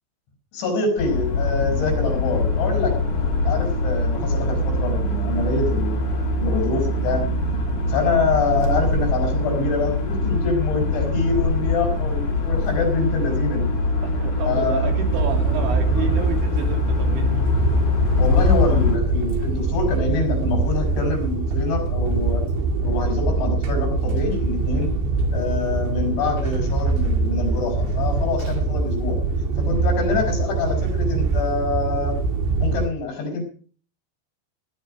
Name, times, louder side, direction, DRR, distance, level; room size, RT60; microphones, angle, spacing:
voice 1, 0.5-3.0 3.3-6.0 6.4-7.2 7.9-13.7 14.5-14.9 16.0-16.1 18.2-22.4 22.8-24.9 25.3-29.2 29.6-32.2 32.6-33.4, left 4 dB, 80° left, 5 dB, 7.2 m, -25 dB
sound 1, 1.0-19.0, left 2 dB, 45° left, 4.6 m, -23 dB
voice 2, 14.0-17.4, right 6 dB, 85° right, 4 dB, 5.0 m, -30 dB
sound 2, 15.1-32.9, right 3 dB, 70° right, 4.1 m, -23 dB
20.0 x 10.5 x 5.1 m, 0.42 s
omnidirectional pair, 5.2 m